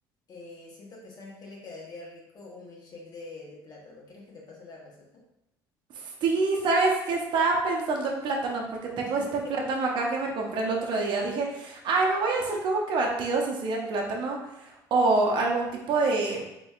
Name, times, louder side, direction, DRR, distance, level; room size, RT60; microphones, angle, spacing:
voice 1, 0.3-5.2 9.0-9.9, left 3 dB, 45° left, -2 dB, 1.3 m, -45 dB
voice 2, 6.0-14.4 14.6-16.4, right 3 dB, 60° right, -1 dB, 0.8 m, -26 dB
4.0 x 3.0 x 2.4 m, 0.86 s
supercardioid pair, 80°, 9 cm